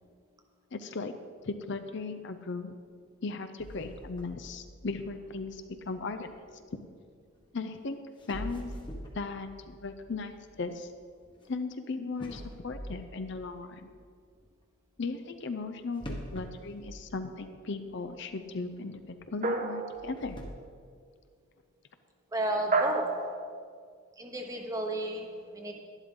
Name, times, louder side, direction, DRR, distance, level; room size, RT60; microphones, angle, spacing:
voice 1, 0.7-1.1 1.4-2.7 3.2-6.3 7.5-8.0 8.3-8.7 9.1-10.9 11.5-13.9 15.0-20.4, left 3 dB, 60° left, 8 dB, 0.6 m, -37 dB
sound 1, 3.6-6.7 7.7-7.8 8.2-11.5 12.2-14.1 16.0-17.8 18.0-18.1 18.8-18.9 19.9-20.5, equal, 25° left, 1.1 m, -44 dB
sound 2, 19.4-20.4 22.7-23.6, right 3 dB, 35° right, 0.7 m, -30 dB
voice 2, 22.3-23.4 24.2-25.7, right 1 dB, 15° right, 3 dB, 1.0 m, -33 dB
11.5 x 11.0 x 3.8 m, 2.1 s
head